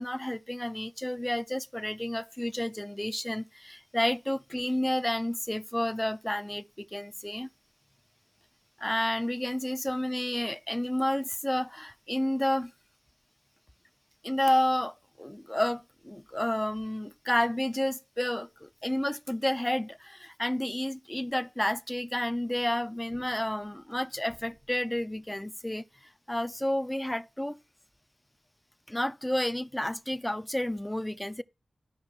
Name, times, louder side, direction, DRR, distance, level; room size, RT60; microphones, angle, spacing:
voice 1, 0.0-7.5 8.8-12.7 14.2-25.8 26.3-27.6 28.9-31.4, left 1 dB, 10° left, 0.5 m, -30 dB
13.0 x 5.2 x 4.5 m
wide cardioid pair, 80°, 0 cm